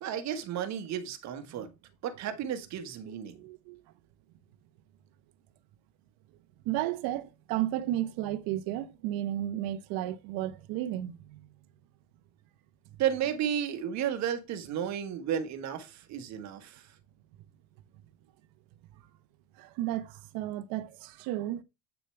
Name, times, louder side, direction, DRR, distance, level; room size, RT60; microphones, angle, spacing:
voice 1, 0.0-1.7 2.0-3.4 13.0-16.8, right 9 dB, 40° right, 1.5 m, -33 dB
voice 2, 3.4-3.8 6.6-11.5 19.6-21.6, right 13 dB, 55° right, 1.1 m, -33 dB
8.5 x 6.8 x 3.3 m
cardioid pair, 150°, 43 cm